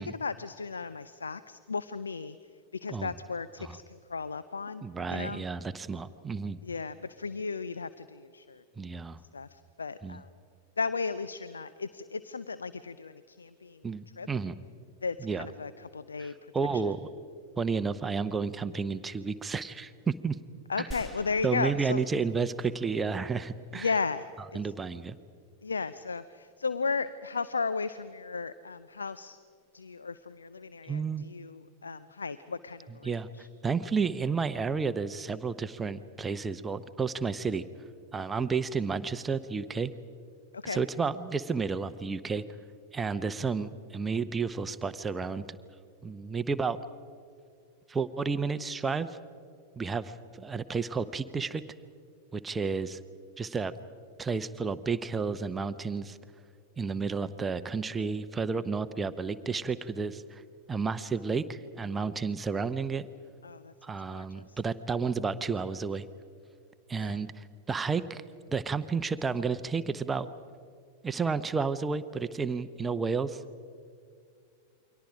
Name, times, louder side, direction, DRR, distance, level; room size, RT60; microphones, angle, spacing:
voice 1, 0.0-2.4 2.7-4.8 5.1-5.4 6.6-8.6 9.3-10.3 10.8-13.8 14.2-14.3 15.0-16.3 16.7-16.8 20.7-22.0 23.7-24.3 24.5-24.6 25.6-29.4 29.7-33.5 40.5-40.8 63.4-63.7 64.1-64.6 67.0-67.2, left 4 dB, 75° left, 15 dB, 0.6 m, -35 dB
voice 2, 4.8-6.6 8.8-9.2 10.0-10.2 13.8-14.6 15.2-15.5 16.2-17.0 17.6-20.4 20.8-20.9 21.4-23.9 24.5-25.2 30.9-31.3 33.0-33.3 33.6-37.6 38.1-39.9 40.6-42.4 42.9-45.6 46.0-46.8 47.9-49.2 49.8-51.6 52.3-53.0 53.4-53.7 54.2-56.2 56.8-60.4 60.7-63.1 63.8-66.1 66.9-68.2 68.5-70.3 71.0-73.4, right 5 dB, 15° right, 12 dB, 0.7 m, -31 dB
sound 1, 20.9-23.2, right 1 dB, 10° left, 2.2 m, -47 dB
29.0 x 23.5 x 5.0 m, 2.3 s
figure-of-eight pair, 90°, 0 cm